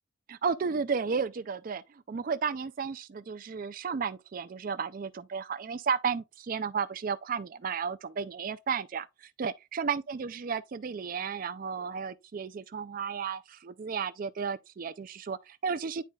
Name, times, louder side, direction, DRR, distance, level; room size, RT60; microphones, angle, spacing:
voice 1, 0.3-16.0, right 6 dB, 45° right, 0.4 m, -33 dB
10.0 x 4.2 x 2.3 m
head